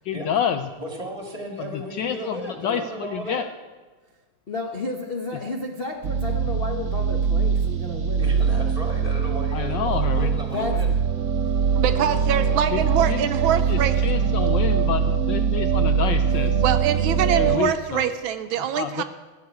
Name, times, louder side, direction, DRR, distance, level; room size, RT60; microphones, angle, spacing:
voice 1, 0.1-0.7 1.6-3.5 9.5-10.3 12.7-13.3 13.7-16.6 17.3-18.1 18.6-19.0, left 8 dB, 75° left, 8 dB, 1.1 m, -28 dB
voice 2, 0.8-3.5 8.2-10.9, right 1 dB, 20° right, 1 dB, 1.9 m, -34 dB
voice 3, 4.5-8.7 10.5-10.8, left 3 dB, 40° left, 0 dB, 0.8 m, -32 dB
sound 1, 6.0-17.6, right 6 dB, 60° right, 1.5 m, -22 dB
voice 4, 11.8-14.0 16.6-19.0, right 9 dB, 75° right, 10 dB, 1.3 m, -24 dB
13.5 x 6.6 x 9.4 m, 1.3 s
omnidirectional pair, 2.4 m